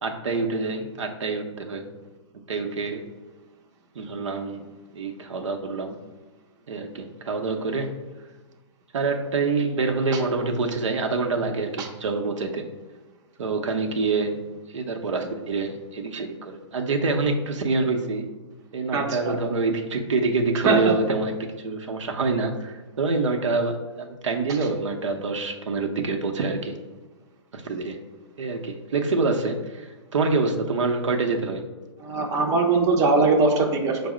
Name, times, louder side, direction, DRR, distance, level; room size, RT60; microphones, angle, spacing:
voice 1, 0.0-1.9 2.5-3.1 3.9-6.0 6.7-8.0 8.9-12.6 13.4-14.4 14.7-18.3 18.7-26.8 27.5-28.0 28.4-31.6, right 3 dB, 80° right, 4 dB, 0.7 m, -26 dB
voice 2, 18.9-19.4 20.7-20.9 32.0-34.0, right 3 dB, 20° right, 1 dB, 0.5 m, -21 dB
5.3 x 2.0 x 4.8 m, 1.3 s
hypercardioid pair, 140°, 15 cm